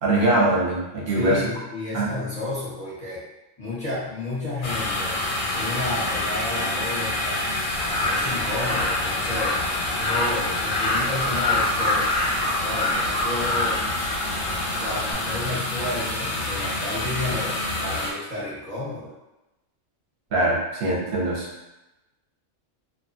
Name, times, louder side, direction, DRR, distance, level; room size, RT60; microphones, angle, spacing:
voice 1, 0.0-1.4 1.9-2.1 20.3-21.7, right 1 dB, 55° right, -4 dB, 0.8 m, -22 dB
voice 2, 1.1-3.2 3.6-5.2 5.5-7.5 8.0-9.6 9.9-12.1 12.6-13.8 14.8-19.1, left 2 dB, 5° left, -10 dB, 0.7 m, -31 dB
sound 1, 4.6-18.1, left 2 dB, 90° left, 1.0 m, -27 dB
Crow, 7.7-15.1, left 2 dB, 40° left, 0.6 m, -27 dB
2.4 x 2.2 x 2.5 m, 0.98 s
omnidirectional pair, 1.4 m